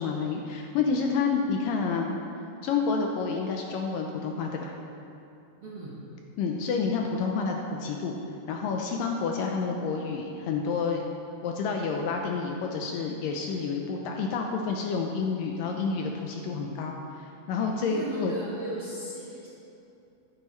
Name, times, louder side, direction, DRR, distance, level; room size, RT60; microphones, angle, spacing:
voice 1, 0.0-2.2 2.6-4.7 6.4-8.2 8.5-11.1 11.4-18.3, left 5 dB, 80° left, 1 dB, 2.1 m, -29 dB
voice 2, 5.6-5.9 17.8-19.5, right 1 dB, 65° right, -7 dB, 1.4 m, -36 dB
13.5 x 9.1 x 3.1 m, 2.7 s
omnidirectional pair, 4.4 m